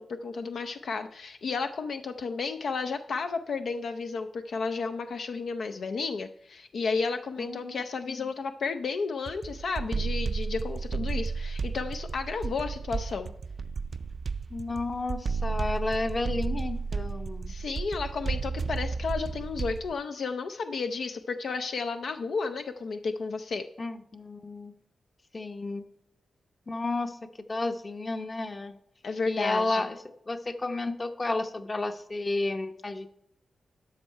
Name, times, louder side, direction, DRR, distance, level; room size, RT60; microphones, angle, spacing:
voice 1, 0.0-13.3 17.5-23.7 29.0-29.8, left 4 dB, 75° left, 7 dB, 0.4 m, -32 dB
voice 2, 7.4-7.7 8.0-8.3 14.5-17.6 23.8-24.7 25.3-25.9 26.7-27.2 27.5-28.8 29.3-30.0 30.3-33.1, left 2 dB, 35° left, 8 dB, 0.9 m, -32 dB
sound 1, 9.3-19.9, right 4 dB, 55° right, 0.3 m, -33 dB
12.5 x 5.5 x 4.4 m, 0.76 s
cardioid pair, 65°, 0 cm